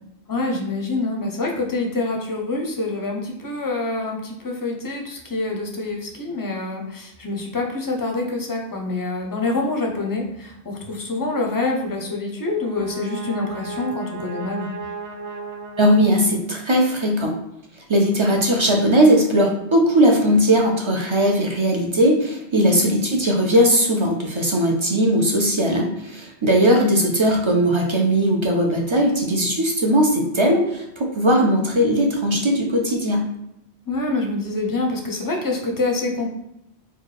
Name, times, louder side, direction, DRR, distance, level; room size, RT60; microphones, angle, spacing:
voice 1, 0.3-14.7 18.2-18.3 22.5-22.7 33.9-36.3, left 2 dB, 25° left, 1 dB, 0.5 m, -26 dB
Brass instrument, 12.3-16.7, right 4 dB, 80° right, 0.9 m, -35 dB
voice 2, 15.8-17.3 17.9-33.3, equal, 40° right, 1 dB, 0.4 m, -18 dB
4.4 x 2.3 x 3.2 m, 0.83 s
omnidirectional pair, 1.1 m